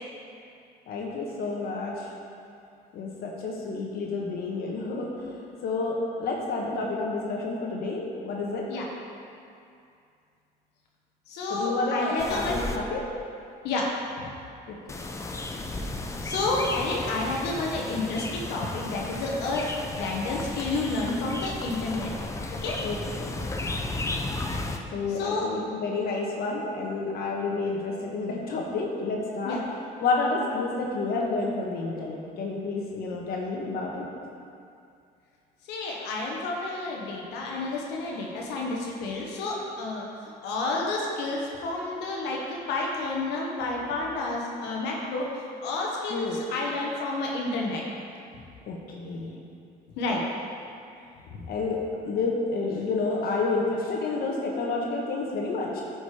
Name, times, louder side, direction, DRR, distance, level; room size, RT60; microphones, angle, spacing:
voice 1, 0.9-2.1 2.9-5.1 5.6-8.6 11.5-13.0 14.7-14.8 22.8-23.3 24.9-29.6 30.0-34.0 46.1-46.4 48.7-49.3 51.5-51.8 52.0-55.8, left 3 dB, 65° left, -2 dB, 1.3 m, -29 dB
voice 2, 11.3-12.6 13.6-13.9 14.2-14.3 16.2-19.7 20.0-22.1 22.5-22.8 25.1-25.5 29.4-29.6 35.6-47.8 50.0-50.2 51.3-51.4, left 2 dB, 85° left, -2 dB, 1.2 m, -30 dB
sound 1, 12.2-12.8 14.9-24.8, left 2 dB, 15° left, 0.6 m, -34 dB
9.7 x 5.3 x 4.9 m, 2.5 s
cardioid pair, 110°, 17 cm